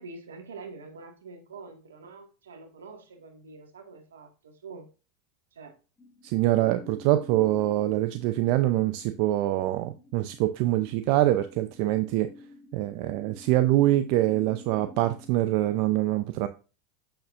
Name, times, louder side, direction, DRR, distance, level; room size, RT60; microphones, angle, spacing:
voice 1, 0.0-4.9 5.5-5.8, right 4 dB, 85° right, 1.9 m, -45 dB
sound 1, 6.0-15.9, left 2 dB, 10° left, 1.6 m, -50 dB
voice 2, 6.2-12.3 12.7-16.5, right 15 dB, 60° right, 0.6 m, -24 dB
7.8 x 6.8 x 2.6 m
hypercardioid pair, 90°, 0 cm